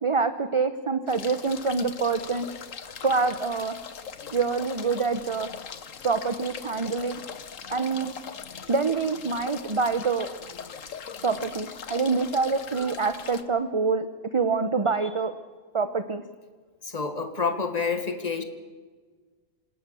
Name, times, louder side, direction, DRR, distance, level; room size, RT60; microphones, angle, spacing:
voice 1, 0.0-2.5 3.0-3.8 4.3-5.5 6.0-7.2 7.7-8.1 8.7-10.3 11.2-14.1 14.3-15.3 15.7-16.2, right 4 dB, 25° right, 10 dB, 0.8 m, -26 dB
sound 1, 1.1-13.4, left 6 dB, 75° left, 1.5 m, -40 dB
voice 2, 16.8-18.4, left 5 dB, 30° left, 8 dB, 2.0 m, -28 dB
27.0 x 17.0 x 7.0 m, 1.5 s
omnidirectional pair, 1.4 m